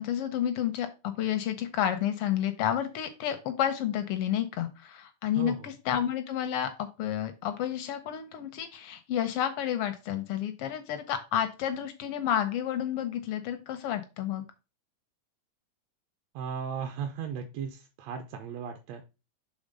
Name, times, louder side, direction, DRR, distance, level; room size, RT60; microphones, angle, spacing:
voice 1, 0.0-14.4, left 10 dB, 80° left, 8 dB, 1.3 m, -30 dB
voice 2, 5.4-5.7 16.4-19.0, right 7 dB, 75° right, 5 dB, 1.8 m, -36 dB
6.4 x 3.5 x 5.2 m, 0.29 s
omnidirectional pair, 3.4 m